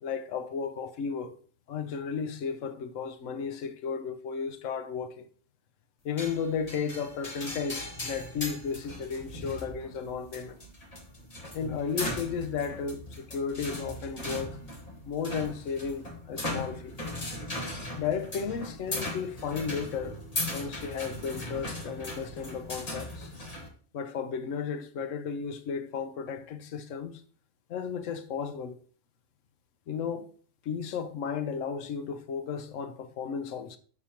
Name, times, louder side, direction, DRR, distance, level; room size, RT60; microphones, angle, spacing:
voice 1, 0.0-1.3 1.7-5.3 6.0-10.6 11.5-14.6 15.0-17.0 18.0-20.2 20.5-23.3 23.9-27.2 27.7-28.8 29.9-30.3 30.6-33.8, left 6 dB, 90° left, 1.0 m, -34 dB
sound 1, 6.2-23.7, left 1 dB, 30° left, 1.5 m, -38 dB
7.0 x 6.6 x 2.9 m
omnidirectional pair, 1.3 m